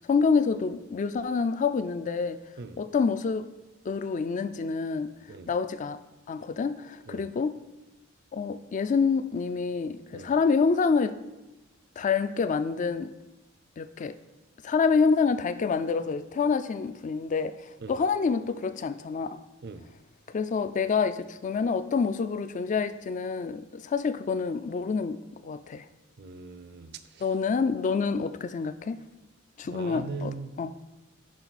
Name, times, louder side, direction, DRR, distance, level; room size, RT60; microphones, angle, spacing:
voice 1, 0.0-2.4 2.8-3.5 3.9-5.1 5.5-6.0 6.3-7.5 8.3-11.2 12.0-13.1 13.8-14.2 14.6-17.6 17.9-19.4 20.3-25.8 27.2-29.0 29.6-30.3 30.6-30.7, left 5 dB, 40° left, 13 dB, 0.3 m, -27 dB
voice 2, 26.2-27.2 29.6-30.5, right 3 dB, 55° right, 11 dB, 0.5 m, -40 dB
10.5 x 4.7 x 4.1 m, 1.0 s
head